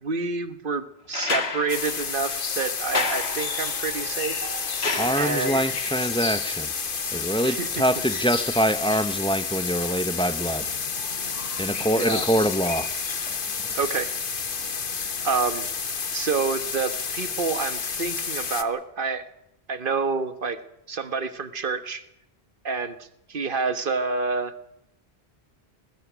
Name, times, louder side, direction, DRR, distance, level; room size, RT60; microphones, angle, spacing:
voice 1, 0.0-4.5 5.2-5.6 7.4-7.7 11.5-11.6 12.0-12.2 13.7-14.1 15.2-15.6 16.1-19.2 19.7-20.6 20.9-22.0 22.6-23.0 23.3-24.5, right 4 dB, 55° right, 1.4 m, -28 dB
sound 1, 1.1-5.7 7.3-7.4, left 4 dB, 75° left, 1.9 m, -31 dB
sound 2, 1.7-18.6, left 5 dB, 55° left, 1.3 m, -30 dB
sound 3, 2.9-11.2 12.3-12.4, right 4 dB, 40° right, 4.1 m, -44 dB
voice 2, 5.0-6.7 7.1-10.7 11.6-12.9 13.3-13.4, equal, 5° left, 0.6 m, -24 dB
21.5 x 20.0 x 6.1 m
omnidirectional pair, 1.1 m